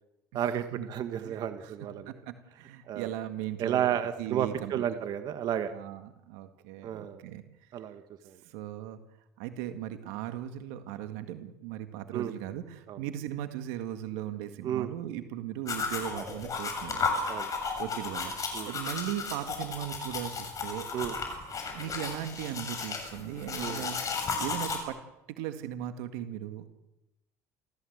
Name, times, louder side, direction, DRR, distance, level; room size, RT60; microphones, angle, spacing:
voice 1, 0.3-2.1 2.9-3.1 3.6-5.7 6.8-7.2 7.7-8.4 12.1-12.3 12.9-13.0 14.6-14.9 17.3-17.5 18.5-18.7 20.9-21.1 23.6-23.9, right 10 dB, 60° right, 9 dB, 1.8 m, -32 dB
voice 2, 1.2-1.7 2.1-4.8 5.7-7.4 8.4-9.0 9.4-17.4 17.8-18.3 18.6-20.9 21.7-24.0 24.4-25.0 25.3-26.7, right 12 dB, 85° right, 8 dB, 1.9 m, -38 dB
sound 1, 15.7-24.8, left 4 dB, 45° left, 7.8 m, -34 dB
28.5 x 15.0 x 8.1 m, 0.92 s
supercardioid pair, 75°, 8 cm